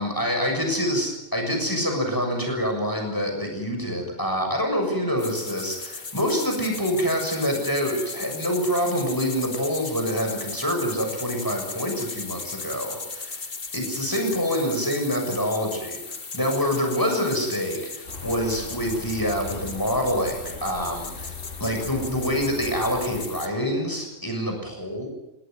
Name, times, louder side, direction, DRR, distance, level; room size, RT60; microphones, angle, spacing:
voice 1, 0.0-13.4 13.7-21.3 21.6-25.1, equal, 15° left, 2 dB, 6.9 m, -26 dB
sound 1, 5.2-23.5, left 4 dB, 45° left, 1.8 m, -37 dB
sound 2, 18.1-23.2, left 4 dB, 70° left, 4.2 m, -40 dB
21.5 x 17.5 x 9.5 m, 0.95 s
omnidirectional pair, 1.3 m